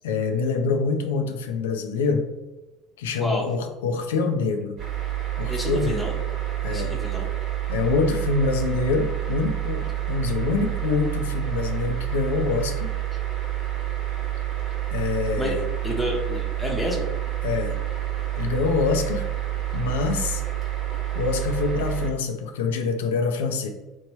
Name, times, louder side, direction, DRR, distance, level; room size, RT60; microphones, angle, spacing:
voice 1, 0.0-2.3 3.0-4.8 5.4-6.0 6.6-6.9 7.7-12.9 14.9-15.6 17.4-17.7 18.4-19.2 19.7-20.4 21.1-23.7, left 4 dB, 85° left, 5 dB, 0.3 m, -25 dB
sound 1, 4.8-22.1, right 13 dB, 45° right, 1.0 m, -28 dB
voice 2, 5.5-6.1 6.7-7.3 15.4-15.5 15.8-17.1, left 1 dB, 15° left, -1 dB, 0.7 m, -29 dB
3.0 x 2.1 x 3.0 m, 1.1 s
hypercardioid pair, 80°, 0 cm